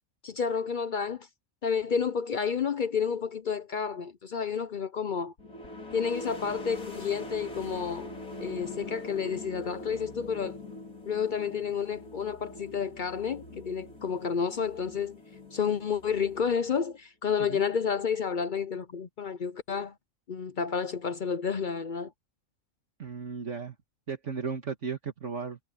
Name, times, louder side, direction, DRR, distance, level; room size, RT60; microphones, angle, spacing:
voice 1, 0.2-1.3 1.6-5.3 5.9-8.1 8.4-10.6 11.1-15.2 15.5-19.9 20.3-22.1, left 6 dB, 50° left, 0.6 m, -30 dB
sound 1, 5.4-16.9, left 1 dB, 85° left, 4.8 m, -43 dB
voice 2, 23.0-23.8 24.1-25.6, right 5 dB, 55° right, 2.0 m, -35 dB
omnidirectional pair, 1.5 m